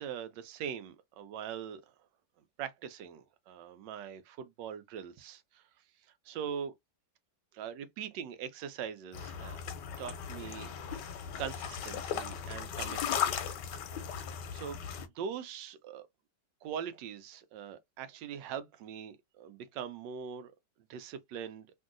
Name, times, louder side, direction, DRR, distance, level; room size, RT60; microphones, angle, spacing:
voice 1, 0.0-1.8 2.6-5.6 6.2-6.7 7.5-9.6 10.0-11.0 11.4-13.3 14.5-14.8 15.1-16.1 16.6-20.5 20.9-21.7, right 8 dB, 90° right, 1.3 m, -42 dB
sound 1, 9.1-15.1, left 8 dB, 85° left, 1.3 m, -37 dB
3.0 x 2.6 x 2.4 m
omnidirectional pair, 1.8 m